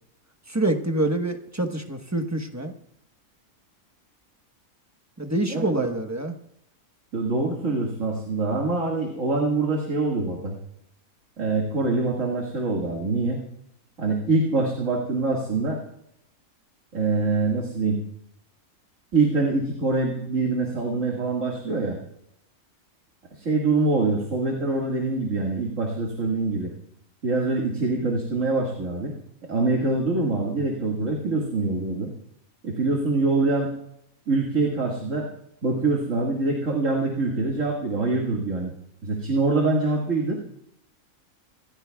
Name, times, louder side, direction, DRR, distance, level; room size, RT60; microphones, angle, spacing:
voice 1, 0.5-2.7 5.2-6.3, right 2 dB, 15° right, 5 dB, 1.0 m, -26 dB
voice 2, 5.5-5.9 7.1-10.5 11.4-13.4 14.0-15.8 16.9-18.0 19.1-22.0 23.4-26.7 27.2-29.1 29.5-32.1 32.6-33.7 34.3-35.3 35.6-38.7 39.0-40.4, right 3 dB, 60° right, -1 dB, 2.3 m, -24 dB
27.0 x 14.5 x 2.3 m, 0.77 s
omnidirectional pair, 1.5 m